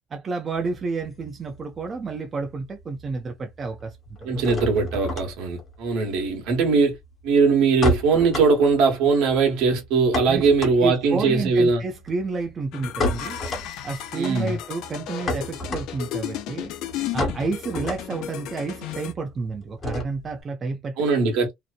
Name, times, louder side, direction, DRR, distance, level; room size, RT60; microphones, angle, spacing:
voice 1, 0.1-4.4 10.3-13.4 13.8-16.7 17.1-21.0, right 3 dB, 30° right, 0.6 m, -30 dB
sound 1, 0.5-2.2 2.4-3.1 3.4-20.4, left 1 dB, 35° left, 1.1 m, -32 dB
voice 2, 4.2-6.9 7.2-11.8 14.1-14.5 21.0-21.5, right 4 dB, 75° right, 1.2 m, -20 dB
sound 2, 12.7-19.1, left 11 dB, 70° left, 0.4 m, -34 dB
2.9 x 2.0 x 2.3 m
cardioid pair, 110°, 0 cm